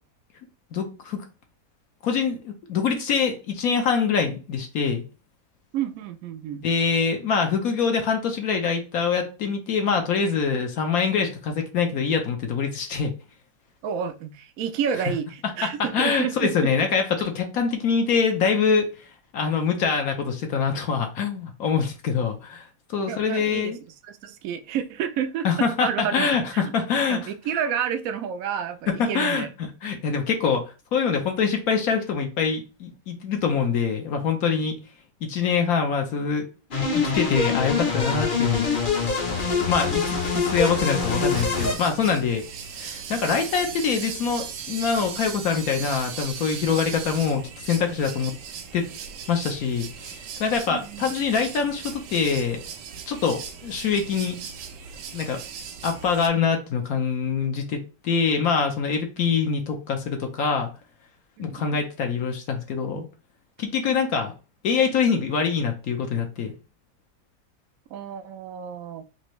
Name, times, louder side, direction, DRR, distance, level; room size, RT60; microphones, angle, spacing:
voice 1, 0.7-1.2 2.0-5.0 6.6-13.1 15.9-18.9 19.3-22.6 22.9-23.8 25.4-27.2 28.9-30.6 30.9-34.7 35.2-36.4 36.9-38.7 39.6-40.0 40.3-42.4 42.8-48.3 48.7-48.8 49.3-52.6 53.1-54.4 55.1-55.4 55.8-60.7 61.4-63.0 63.6-64.3 64.6-66.5, left 6 dB, 65° left, 1.1 m, -24 dB
voice 2, 5.7-6.6 13.8-16.5 23.1-23.8 24.1-26.3 26.5-26.7 27.1-29.5 50.7-51.1 61.4-61.8 67.9-69.1, right 8 dB, 65° right, 0.9 m, -30 dB
sound 1, 36.7-41.7, left 4 dB, 40° left, 0.8 m, -24 dB
sound 2, 41.3-56.3, right 7 dB, 85° right, 1.3 m, -38 dB
4.3 x 2.8 x 3.1 m
omnidirectional pair, 1.8 m